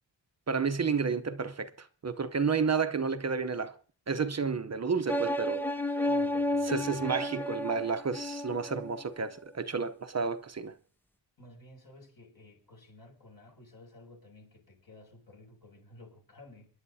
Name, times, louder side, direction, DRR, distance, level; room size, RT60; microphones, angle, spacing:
voice 1, 0.5-3.8 4.1-5.6 6.7-10.7, right 5 dB, 35° right, 0.8 m, -31 dB
sound 1, 5.1-9.0, left 1 dB, 5° left, 0.5 m, -31 dB
voice 2, 6.0-7.1 11.4-16.7, left 2 dB, 50° left, 6.5 m, -53 dB
29.0 x 11.0 x 2.8 m
wide cardioid pair, 105°, 45 cm